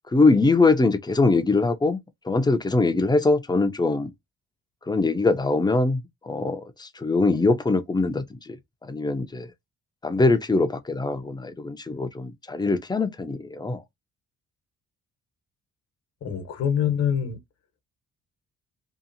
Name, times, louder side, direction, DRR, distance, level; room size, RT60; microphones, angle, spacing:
voice 1, 0.1-4.1 4.9-8.6 8.8-9.5 10.0-13.8, left 3 dB, 15° left, 0.5 m, -22 dB
voice 2, 16.2-17.4, left 8 dB, 60° left, 0.9 m, -25 dB
2.8 x 2.4 x 2.5 m
cardioid pair, 90°, 30 cm